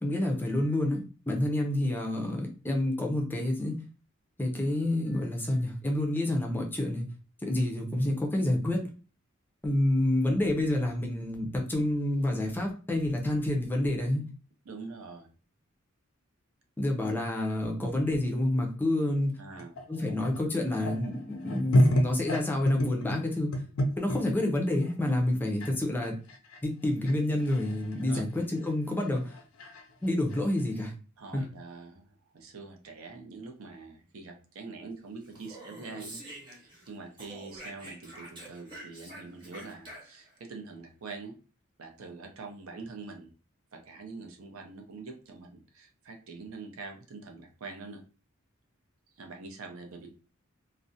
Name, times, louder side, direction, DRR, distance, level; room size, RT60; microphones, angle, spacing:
voice 1, 0.0-3.8 4.4-7.1 7.4-8.8 9.6-14.3 16.8-19.3 19.9-23.5 24.0-26.2 26.6-29.4 30.0-30.9 31.3-31.4, left 1 dB, 10° left, 1 dB, 0.4 m, -28 dB
voice 2, 14.7-15.3 19.4-19.8 28.1-28.2 31.2-32.1 32.3-41.3 41.8-43.3 43.7-48.0 49.2-50.1, right 3 dB, 85° right, 4 dB, 0.5 m, -44 dB
sound 1, 19.5-24.2 24.7-24.9 25.6-25.7 26.0-30.8, equal, 90° left, 0.5 m, -30 dB
Speech, 35.2-36.9 37.2-40.3, right 1 dB, 25° right, 0.8 m, -47 dB
2.4 x 2.0 x 2.6 m, 0.36 s
head